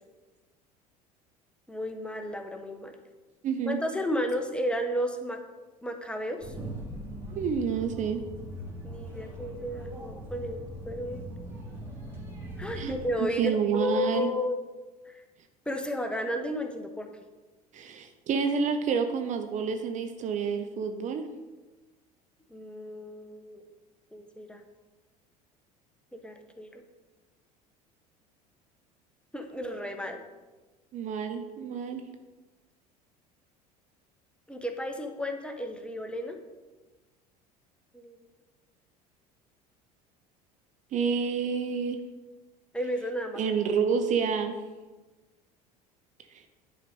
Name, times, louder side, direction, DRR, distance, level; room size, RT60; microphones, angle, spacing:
voice 1, 1.7-3.0 3.7-5.4 5.8-6.5 8.8-11.3 12.6-14.6 15.0-15.2 15.7-17.1 22.5-23.7 24.1-24.6 26.1-26.8 29.3-30.2 34.5-36.4 37.9-38.2 42.7-43.5, left 1 dB, 5° left, 5 dB, 1.0 m, -33 dB
voice 2, 3.4-3.8 7.3-8.2 12.8-14.3 17.7-21.3 30.9-32.0 40.9-42.0 43.4-44.5 46.3-46.4, right 6 dB, 40° right, 6 dB, 0.7 m, -29 dB
sound 1, 6.4-13.1, equal, 10° right, 2.5 m, -40 dB
10.5 x 4.8 x 5.1 m, 1.2 s
figure-of-eight pair, 65°, 20 cm